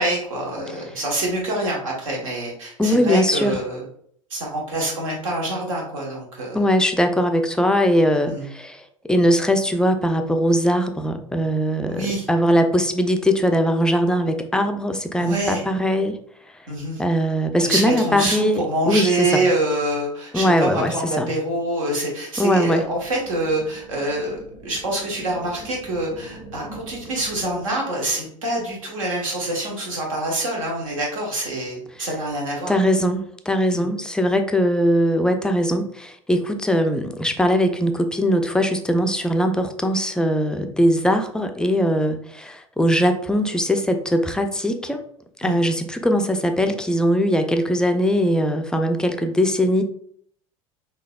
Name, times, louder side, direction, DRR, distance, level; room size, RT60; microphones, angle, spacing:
voice 1, 0.0-3.8 4.3-6.6 8.3-8.5 11.9-12.3 15.2-15.6 16.7-17.0 17.6-32.8 33.7-33.9 45.4-45.6, right 1 dB, 75° right, -1 dB, 1.1 m, -26 dB
voice 2, 2.8-3.6 6.5-8.8 9.1-16.2 17.0-19.4 20.3-21.3 22.4-22.8 32.0-32.1 32.7-45.0 45.4-49.8, equal, 5° left, 6 dB, 0.3 m, -20 dB
sound 1, 22.8-27.8, right 1 dB, 10° right, 0.8 m, -42 dB
3.8 x 2.7 x 2.3 m, 0.64 s
figure-of-eight pair, 75°, 18 cm